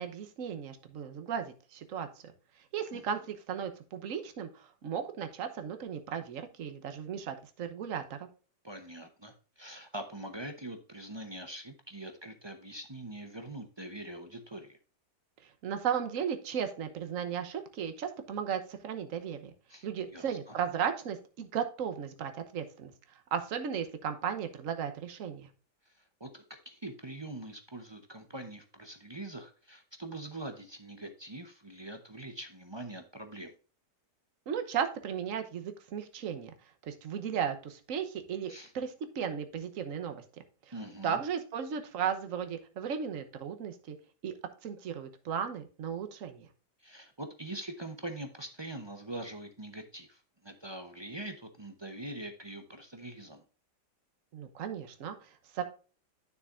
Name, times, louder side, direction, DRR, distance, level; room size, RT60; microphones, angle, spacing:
voice 1, 0.0-2.1 2.7-8.3 15.6-19.5 19.8-22.9 23.3-25.5 34.5-36.5 36.9-40.2 41.0-44.0 44.2-44.3 44.6-46.5 54.3-55.6, right 8 dB, 55° right, 7 dB, 1.3 m, -35 dB
voice 2, 8.6-14.8 19.7-19.9 20.1-20.5 25.9-33.5 38.5-38.7 40.7-41.2 46.8-53.4, right 1 dB, 25° right, 6 dB, 0.6 m, -43 dB
9.7 x 6.7 x 2.5 m, 0.37 s
omnidirectional pair, 1.8 m